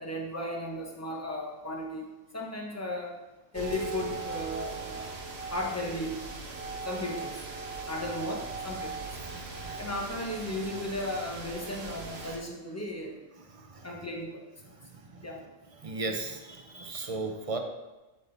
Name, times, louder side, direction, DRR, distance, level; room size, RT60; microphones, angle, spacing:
voice 1, 0.0-2.1 2.3-3.1 3.5-5.0 5.5-6.2 6.8-7.4 7.9-9.2 9.8-13.2 13.8-14.7 15.2-15.4, left 1 dB, 15° left, -1 dB, 1.1 m, -35 dB
sound 1, 3.5-12.4, right 4 dB, 60° right, 1.2 m, -39 dB
voice 2, 9.2-9.8 13.4-13.9 14.9-15.3 15.8-17.6, right 3 dB, 35° right, 4 dB, 0.6 m, -37 dB
10.5 x 4.3 x 3.4 m, 1.1 s
omnidirectional pair, 1.3 m